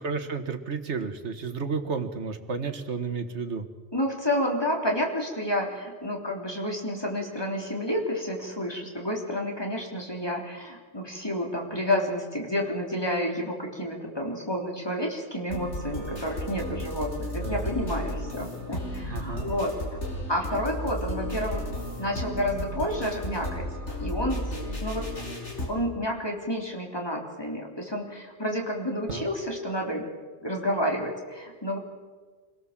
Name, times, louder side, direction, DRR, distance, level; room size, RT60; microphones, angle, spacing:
voice 1, 0.0-3.7 17.4-17.7 19.1-19.5 29.1-29.3, right 5 dB, 80° right, 8 dB, 1.8 m, -32 dB
voice 2, 3.9-19.8 20.3-21.6 22.0-23.7 24.0-24.5 24.8-25.0 25.7-30.1 30.4-31.8, equal, 20° left, 0 dB, 3.6 m, -30 dB
sound 1, 15.5-25.7, left 1 dB, 90° left, 5.2 m, -34 dB
26.0 x 17.5 x 7.5 m, 1.5 s
omnidirectional pair, 1.2 m